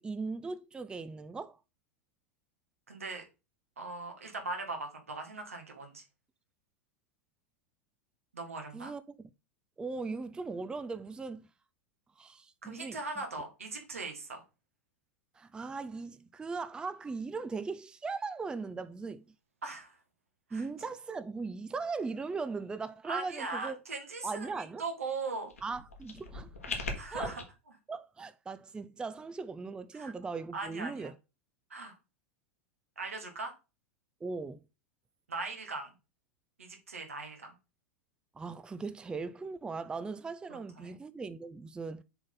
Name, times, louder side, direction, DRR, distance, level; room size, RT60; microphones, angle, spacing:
voice 1, 0.0-1.6 8.7-9.3 9.8-11.5 12.2-13.2 15.4-19.2 20.5-23.8 24.2-24.8 25.6-26.8 27.1-27.4 27.9-31.1 34.2-34.6 38.4-42.0, right 4 dB, 10° right, 0.4 m, -39 dB
voice 2, 2.9-3.2 3.8-6.0 8.3-8.9 12.6-14.4 19.6-20.0 20.5-20.6 23.1-25.5 27.0-27.4 29.9-30.1 30.5-31.1 31.7-31.9 33.0-33.5 35.3-35.9 36.6-37.5 40.5-41.0, right 3 dB, 80° right, 2.0 m, -39 dB
sound 1, 25.5-27.4, left 3 dB, 85° left, 1.7 m, -40 dB
6.8 x 4.0 x 4.0 m
figure-of-eight pair, 90°, 7 cm